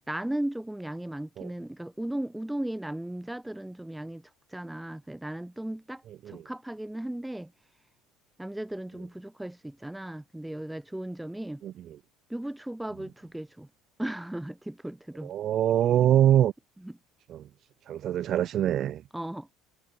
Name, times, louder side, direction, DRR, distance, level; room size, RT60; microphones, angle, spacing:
voice 1, 0.0-7.5 8.4-11.6 12.3-13.7 14.0-15.3 16.0-16.1 16.8-17.0 19.1-19.5, right 1 dB, 5° right, 4.7 m, -36 dB
voice 2, 15.2-16.5 17.3-17.4 17.9-19.0, right 11 dB, 50° right, 0.5 m, -23 dB
supercardioid pair, 110°, 0 cm